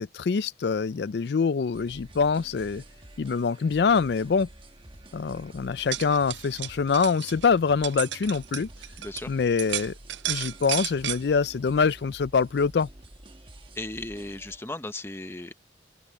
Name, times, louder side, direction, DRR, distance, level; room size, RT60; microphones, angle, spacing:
voice 1, 0.0-2.8 3.2-4.5 5.1-8.7 9.3-9.9 10.3-12.9, left 5 dB, 65° left, 0.4 m, -25 dB
sound 1, 1.7-14.6, right 1 dB, 30° right, 1.3 m, -49 dB
sound 2, 5.7-9.2 9.6-11.2, right 13 dB, 80° right, 0.5 m, -33 dB
voice 2, 9.0-9.3 13.7-15.5, left 2 dB, 15° left, 0.9 m, -36 dB
open air
head